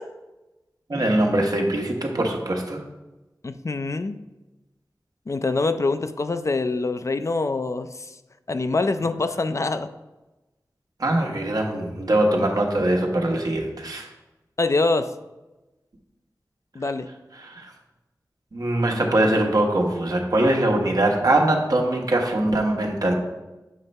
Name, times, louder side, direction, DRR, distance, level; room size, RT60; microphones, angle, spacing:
voice 1, 0.9-2.8 11.0-14.1 17.4-17.7 18.5-23.1, right 1 dB, 60° right, 1 dB, 1.2 m, -22 dB
voice 2, 3.4-4.2 5.3-8.2 8.5-9.9 14.6-15.1 16.7-17.1, left 3 dB, 45° left, 9 dB, 0.4 m, -25 dB
7.4 x 3.3 x 5.3 m, 1.0 s
wide cardioid pair, 70°, 7 cm